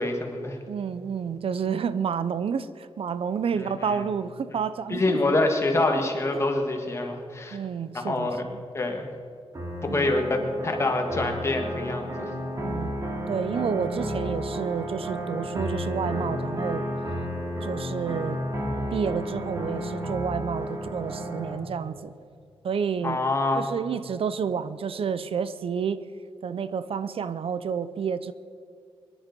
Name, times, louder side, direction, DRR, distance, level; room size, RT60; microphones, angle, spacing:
voice 1, 0.0-0.6 3.6-4.0 4.9-7.6 7.9-8.4 8.7-9.0 9.9-10.2 10.6-12.3 23.0-23.7, left 2 dB, 30° left, 3 dB, 1.8 m, -26 dB
voice 2, 0.7-5.3 6.3-6.4 7.5-8.6 9.9-10.1 12.6-12.9 13.3-16.9 17.6-18.4 18.9-22.1 22.6-23.2 23.5-26.0 26.4-28.3, right 7 dB, 70° right, 14 dB, 0.6 m, -30 dB
sound 1, 9.5-21.6, equal, 30° right, 2.6 m, -32 dB
23.0 x 11.0 x 5.3 m, 2.4 s
wide cardioid pair, 160°, 10 cm